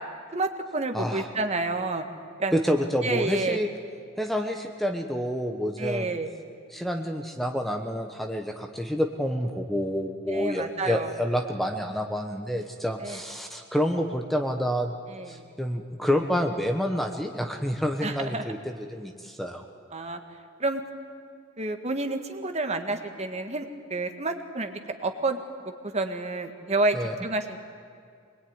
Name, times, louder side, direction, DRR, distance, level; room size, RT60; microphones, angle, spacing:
voice 1, 0.3-2.0 2.4-2.6 3.0-3.6 5.8-6.3 10.3-11.1 13.0-13.2 15.1-15.5 18.0-18.4 19.9-20.2 20.6-20.8 21.6-25.4 25.9-27.0 27.2-27.6, right 2 dB, 35° right, 6 dB, 1.7 m, -29 dB
voice 2, 0.9-1.3 2.5-3.7 4.2-6.1 6.7-14.9 15.3-19.6 26.9-27.1, equal, ahead, 4 dB, 1.1 m, -28 dB
24.5 x 21.0 x 9.7 m, 2.2 s
head